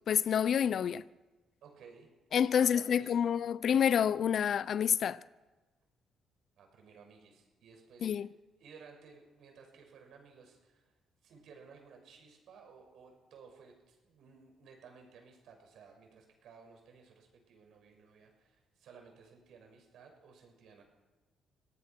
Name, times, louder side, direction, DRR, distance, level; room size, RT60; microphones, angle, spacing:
voice 1, 0.1-1.0 2.3-5.2 8.0-8.3, left 8 dB, 60° left, 0.6 m, -28 dB
voice 2, 1.6-2.1 2.5-3.6 6.6-8.3 8.6-10.9 11.2-20.8, right 5 dB, 75° right, 6.6 m, -57 dB
25.5 x 18.0 x 6.2 m
cardioid pair, 90°, 0 cm